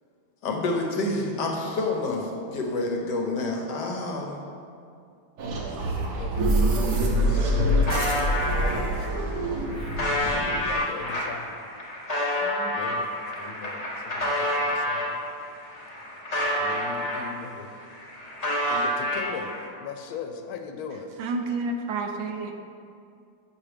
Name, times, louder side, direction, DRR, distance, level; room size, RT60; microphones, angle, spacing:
voice 1, 0.4-4.4, left 2 dB, 65° left, 0 dB, 1.3 m, -28 dB
sound 1, 5.4-10.7, equal, 60° right, 1.3 m, -25 dB
voice 2, 5.8-7.9 8.4-9.1 10.2-11.6 12.0-12.1 12.4-15.2 16.6-17.8 18.7-19.5 19.8-21.1, left 6 dB, 85° left, 6 dB, 1.4 m, -40 dB
sound 2, 7.2-8.7 9.4-15.1 15.6-17.5 17.8-19.7, left 1 dB, 40° left, 0.5 m, -29 dB
voice 3, 21.2-22.5, right 3 dB, 80° right, 4 dB, 1.4 m, -29 dB
8.4 x 5.9 x 3.3 m, 2.4 s
omnidirectional pair, 2.2 m